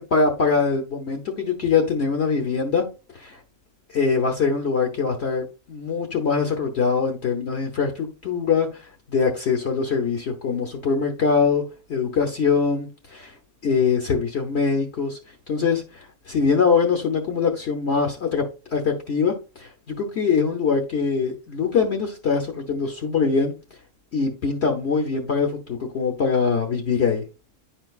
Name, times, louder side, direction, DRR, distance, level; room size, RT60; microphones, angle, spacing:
voice 1, 0.1-2.8 3.1-3.4 3.9-11.6 11.9-13.3 13.6-15.2 15.5-18.4 18.7-23.5 24.1-27.2, left 5 dB, 50° left, 1.0 m, -23 dB
10.0 x 4.5 x 2.4 m
omnidirectional pair, 1.5 m